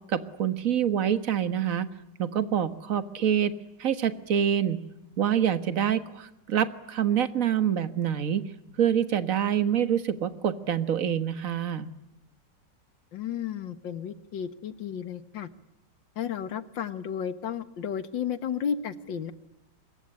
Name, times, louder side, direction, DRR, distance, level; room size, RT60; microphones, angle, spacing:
voice 1, 0.1-1.9 2.2-3.5 3.8-4.8 5.2-8.4 8.8-11.9, right 9 dB, 50° right, 11 dB, 1.8 m, -26 dB
voice 2, 13.1-15.5 16.2-19.3, left 8 dB, 85° left, 13 dB, 2.1 m, -33 dB
25.5 x 22.0 x 9.9 m, 0.90 s
omnidirectional pair, 2.0 m